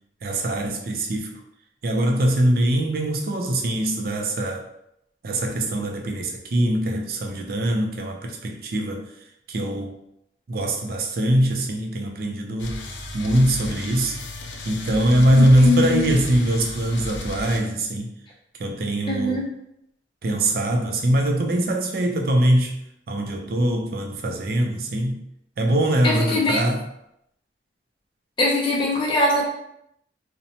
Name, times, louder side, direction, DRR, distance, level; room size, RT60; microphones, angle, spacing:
voice 1, 0.2-1.3 1.8-4.6 5.2-9.1 9.5-9.9 10.5-12.8 13.1-14.2 14.7-18.1 18.6-19.4 20.2-22.8 23.1-25.2 25.6-26.8, right 1 dB, 50° right, 2 dB, 0.4 m, -22 dB
sound 1, 12.6-17.6, left 1 dB, 85° left, 0.4 m, -34 dB
voice 2, 15.3-16.1 19.1-19.5 26.0-26.7 28.4-29.5, left 2 dB, 25° left, -4 dB, 0.4 m, -22 dB
2.7 x 2.1 x 2.7 m, 0.77 s
head